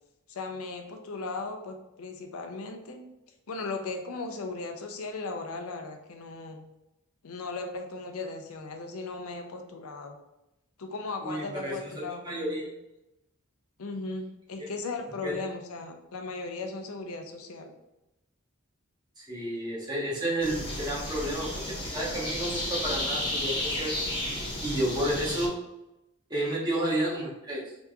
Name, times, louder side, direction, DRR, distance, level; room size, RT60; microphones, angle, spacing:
voice 1, 0.3-3.0 3.5-6.6 7.2-10.2 10.8-12.7 13.8-17.7, left 3 dB, 70° left, 5 dB, 0.5 m, -37 dB
voice 2, 11.2-12.7 14.6-14.7 15.2-15.4 19.2-23.9 24.6-25.5 26.3-27.6, right 1 dB, 20° right, -6 dB, 1.1 m, -31 dB
sound 1, 20.4-25.5, left 1 dB, 20° left, 1.0 m, -32 dB
3.4 x 2.9 x 2.4 m, 0.90 s
head